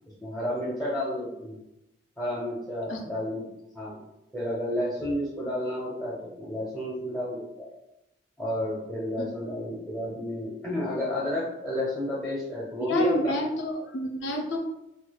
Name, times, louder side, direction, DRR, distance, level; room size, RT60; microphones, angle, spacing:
voice 1, 0.2-1.6 2.2-3.4 3.7-4.0 4.3-7.7 8.4-13.3, left 1 dB, ahead, -6 dB, 0.7 m, -31 dB
voice 2, 12.9-14.6, equal, 85° left, 1 dB, 0.5 m, -28 dB
4.4 x 2.4 x 2.2 m, 0.88 s
head